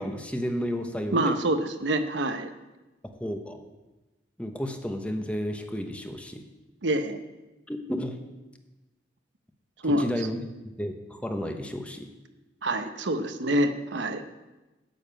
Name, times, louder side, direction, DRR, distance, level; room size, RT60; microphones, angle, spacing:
voice 1, 0.0-1.4 3.2-3.6 4.4-6.5 7.7-8.2 9.9-10.4 10.8-12.1, equal, 5° left, 5 dB, 0.9 m, -32 dB
voice 2, 1.1-2.5 6.8-7.2 9.8-10.1 12.6-14.2, right 1 dB, 75° right, 8 dB, 0.9 m, -26 dB
9.2 x 7.2 x 8.7 m, 1.1 s
head